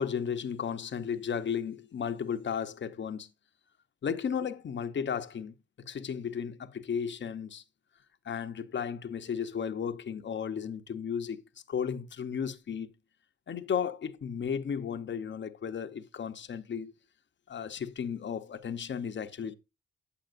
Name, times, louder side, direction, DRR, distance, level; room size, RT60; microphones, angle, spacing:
voice 1, 0.0-3.3 4.0-5.5 5.8-7.6 8.3-11.4 11.7-12.9 13.5-16.9 17.5-19.5, left 7 dB, 40° left, 0.7 m, -34 dB
8.4 x 7.7 x 2.5 m
cardioid pair, 90°, 30 cm